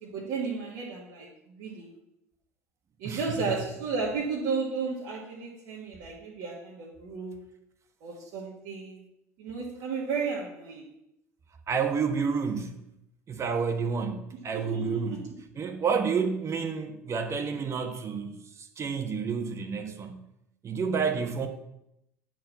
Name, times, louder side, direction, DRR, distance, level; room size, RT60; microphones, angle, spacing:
voice 1, 0.0-1.9 3.0-7.4 8.0-9.0 9.4-10.9 14.5-15.2, right 4 dB, 65° right, -4 dB, 1.7 m, -33 dB
voice 2, 3.0-3.5 11.7-12.8 13.3-15.2 15.6-20.3 20.6-21.5, right 5 dB, 35° right, 6 dB, 1.4 m, -30 dB
9.2 x 4.6 x 5.8 m, 0.82 s
hypercardioid pair, 65°, 8 cm